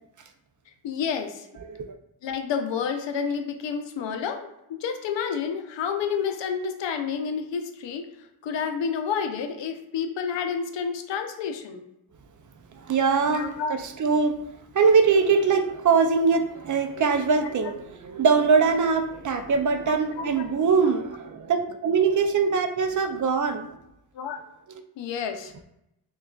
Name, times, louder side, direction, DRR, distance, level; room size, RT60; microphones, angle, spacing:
voice 1, 0.8-1.3 2.2-8.0 8.4-11.8 13.3-13.7 19.9-20.5 24.2-24.4 25.0-25.5, left 6 dB, 80° left, 6 dB, 0.6 m, -29 dB
voice 2, 12.9-14.4 14.7-23.7, right 5 dB, 45° right, 6 dB, 0.4 m, -22 dB
6.1 x 2.3 x 2.3 m, 0.82 s
cardioid pair, 105°, 43 cm